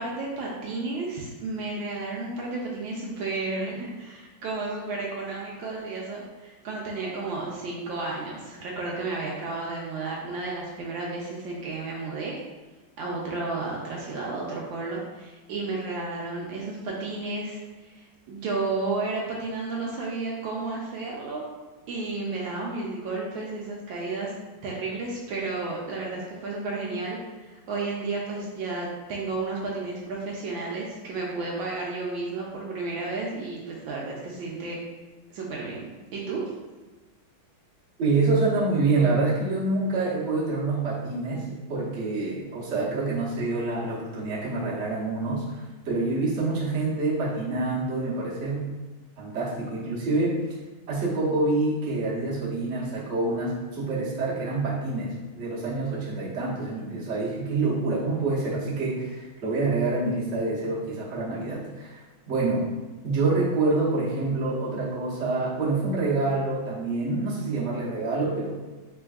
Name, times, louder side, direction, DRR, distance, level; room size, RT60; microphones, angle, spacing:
voice 1, 0.0-12.3 13.0-21.4 21.9-24.3 24.6-34.8 35.3-35.9 36.1-36.4, right 3 dB, 75° right, -3 dB, 1.2 m, -32 dB
voice 2, 38.0-48.6 49.2-50.4 50.9-62.7 63.0-68.6, right 3 dB, 45° right, -7 dB, 1.0 m, -27 dB
3.7 x 3.4 x 2.3 m, 1.2 s
omnidirectional pair, 2.3 m